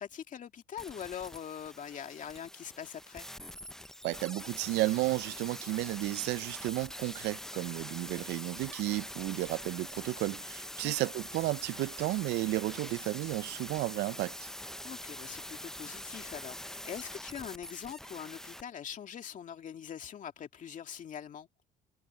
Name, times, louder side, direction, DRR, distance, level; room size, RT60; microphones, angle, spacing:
voice 1, 0.0-3.3 10.8-10.9 14.8-21.5, left 8 dB, 50° left, 2.4 m, -43 dB
sound 1, 0.8-18.6 18.9-19.0, left 1 dB, 5° left, 0.5 m, -44 dB
voice 2, 4.0-14.5, right 19 dB, 85° right, 0.5 m, -33 dB
cardioid pair, 110°, 17 cm